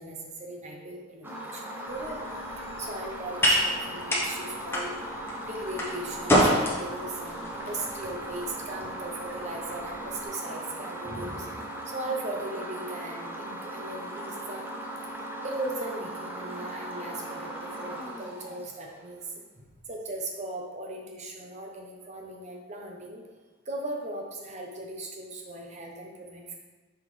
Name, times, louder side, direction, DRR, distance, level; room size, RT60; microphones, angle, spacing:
voice 1, 0.0-2.2 2.6-5.0 5.4-14.7 15.4-23.2 23.6-26.5, right 2 dB, 35° right, 0 dB, 0.9 m, -38 dB
sound 1, 1.2-19.2, right 1 dB, 10° right, 0.6 m, -38 dB
sound 2, 1.9-10.3, equal, 10° left, 1.0 m, -29 dB
5.7 x 5.6 x 3.3 m, 1.2 s
head